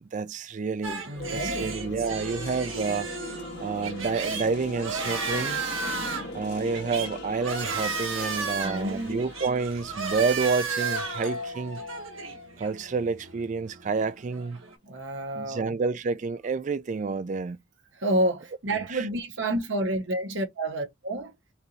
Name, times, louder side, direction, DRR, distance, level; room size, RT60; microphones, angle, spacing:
voice 1, 0.0-1.0 1.3-3.1 3.6-5.6 6.3-11.8 12.6-14.6 15.3-17.6 18.9-19.0, right 4 dB, 40° right, 0.3 m, -29 dB
sound 1, 0.8-14.7, right 4 dB, 85° right, 1.6 m, -34 dB
voice 2, 1.0-1.8 8.6-9.2 9.5-9.6 14.8-15.8 17.9-21.3, right 1 dB, 65° right, 1.1 m, -29 dB
sound 2, 1.1-13.3, left 2 dB, 55° left, 1.5 m, -40 dB
5.3 x 2.6 x 3.1 m
head